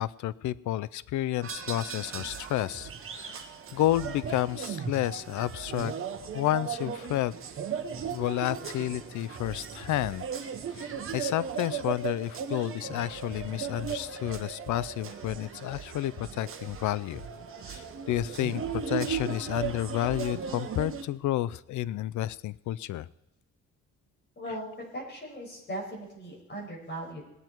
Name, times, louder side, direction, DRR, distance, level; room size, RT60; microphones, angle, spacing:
voice 1, 0.0-3.4 3.7-5.9 6.3-7.3 8.1-10.2 10.7-17.2 17.6-23.1, left 14 dB, 80° left, 18 dB, 0.5 m, -31 dB
sound 1, 1.4-21.0, right 7 dB, 45° right, 1.2 m, -37 dB
voice 2, 24.4-24.7 24.9-27.2, right 1 dB, 35° left, -2 dB, 5.8 m, -38 dB
19.5 x 9.4 x 4.5 m, 0.93 s
cardioid pair, 150°, 29 cm